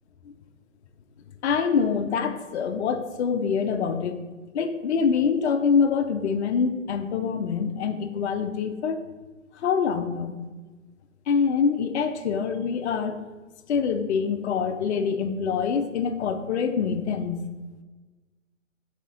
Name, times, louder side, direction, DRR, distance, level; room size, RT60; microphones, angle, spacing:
voice 1, 1.4-4.2 4.5-9.0 9.6-10.3 11.3-13.2 13.7-17.4, left 6 dB, 60° left, 8 dB, 0.5 m, -25 dB
4.1 x 4.1 x 2.5 m, 1.3 s
figure-of-eight pair, 130°, 39 cm